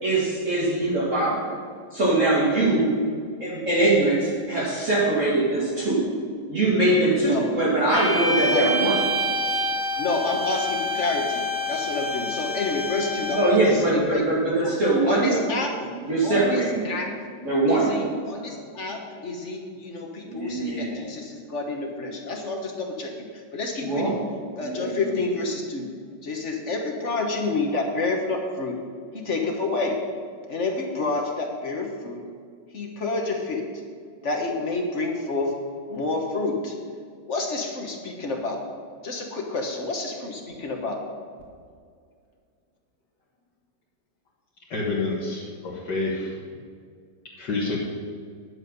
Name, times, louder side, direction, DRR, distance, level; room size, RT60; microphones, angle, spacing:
voice 1, 0.0-1.5 1.9-2.9 3.4-6.1 6.5-9.0 13.3-15.5 16.0-17.0 17.4-17.9 20.2-21.0 23.8-24.2 24.6-24.9, right 2 dB, 45° right, -8 dB, 2.5 m, -22 dB
voice 2, 7.2-7.5 8.4-8.7 10.0-13.6 13.9-14.7 15.0-15.7 16.2-17.1 17.7-23.3 23.5-24.2 24.6-25.9 26.2-28.7 29.1-29.9 30.5-32.2 32.7-33.6 34.2-35.5 35.9-36.7 37.3-38.6 39.0-41.0, left 3 dB, 40° left, 1 dB, 1.5 m, -29 dB
sound 1, 7.9-13.7, equal, 80° right, 2.9 m, -27 dB
voice 3, 44.7-46.3 47.4-47.8, left 3 dB, 65° left, -6 dB, 2.0 m, -28 dB
10.5 x 8.3 x 5.4 m, 2.1 s
omnidirectional pair, 2.0 m